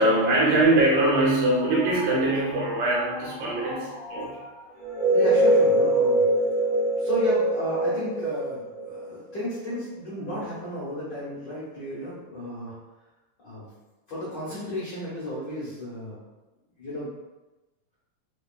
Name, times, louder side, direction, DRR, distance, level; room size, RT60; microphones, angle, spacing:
voice 1, 0.0-4.6, right 2 dB, 75° right, -5 dB, 2.4 m, -22 dB
sound 1, 4.8-9.4, right 1 dB, 50° right, 1.4 m, -22 dB
voice 2, 5.1-6.2 7.0-12.7 13.4-13.7 14.1-16.2 16.8-17.1, left 1 dB, 75° left, -10 dB, 1.0 m, -33 dB
5.0 x 3.0 x 2.3 m, 1.1 s
omnidirectional pair, 3.9 m